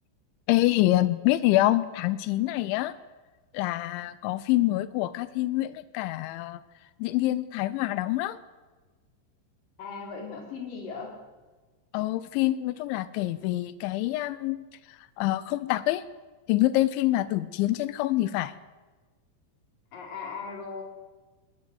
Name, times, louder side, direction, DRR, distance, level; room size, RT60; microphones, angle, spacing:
voice 1, 0.5-2.9 3.5-6.6 7.0-8.4 11.9-14.7 15.2-16.0 16.5-18.5, left 16 dB, 80° left, 15 dB, 3.2 m, -26 dB
voice 2, 9.8-11.2 19.9-20.8, left 5 dB, 45° left, 1 dB, 5.8 m, -38 dB
20.5 x 20.0 x 8.0 m, 1.3 s
omnidirectional pair, 5.6 m